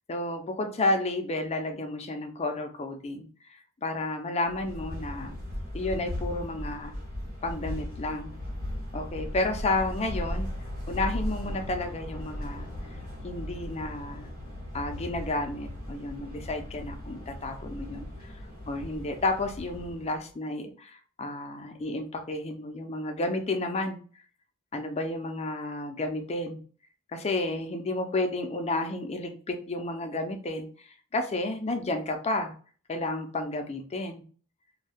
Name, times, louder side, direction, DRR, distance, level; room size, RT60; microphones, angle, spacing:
voice 1, 0.1-5.3 5.7-6.9 7.4-8.3 8.9-10.5 10.9-12.7 13.2-14.3 14.7-18.3 18.7-24.0 24.7-26.6 27.1-32.5 32.9-34.2, left 2 dB, 30° left, 5 dB, 0.4 m, -31 dB
sound 1, 4.5-20.2, left 1 dB, 65° right, 1.5 m, -37 dB
2.6 x 2.2 x 3.3 m, 0.42 s
head